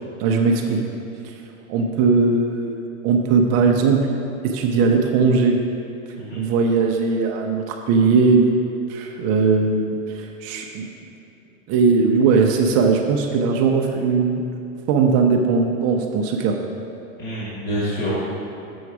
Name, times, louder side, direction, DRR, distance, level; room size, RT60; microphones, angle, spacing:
voice 1, 0.2-0.8 1.2-1.3 1.7-2.8 3.0-4.1 4.4-5.6 6.3-8.5 8.9-10.9 11.7-14.4 14.9-16.6, right 4 dB, 40° right, 2 dB, 0.6 m, -19 dB
voice 2, 17.2-18.1, equal, 25° left, -8 dB, 1.9 m, -27 dB
7.1 x 6.2 x 4.7 m, 2.6 s
supercardioid pair, 130°, 42 cm